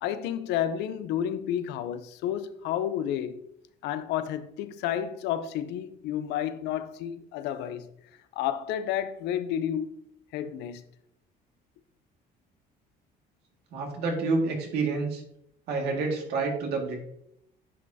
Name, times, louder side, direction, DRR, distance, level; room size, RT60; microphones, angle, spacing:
voice 1, 0.0-3.4 3.8-7.9 8.4-10.0 10.3-10.8, left 10 dB, 90° left, 0.6 m, -31 dB
voice 2, 13.7-15.2 15.7-17.0, right 3 dB, 75° right, 2.0 m, -28 dB
9.5 x 5.5 x 2.8 m
cardioid pair, 110°, 17 cm